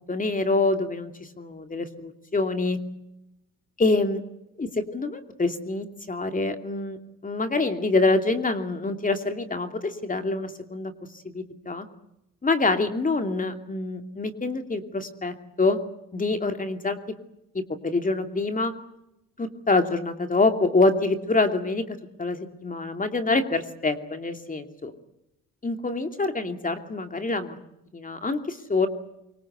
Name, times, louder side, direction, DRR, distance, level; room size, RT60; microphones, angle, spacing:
voice 1, 0.1-2.8 3.8-4.2 4.6-7.0 7.2-10.9 11.3-11.9 12.4-15.8 16.1-17.1 17.5-18.7 19.4-24.9 25.6-27.6 27.9-28.9, left 3 dB, 25° left, 7 dB, 2.7 m, -26 dB
24.5 x 24.0 x 8.1 m, 0.86 s
cardioid pair, 90°, 30 cm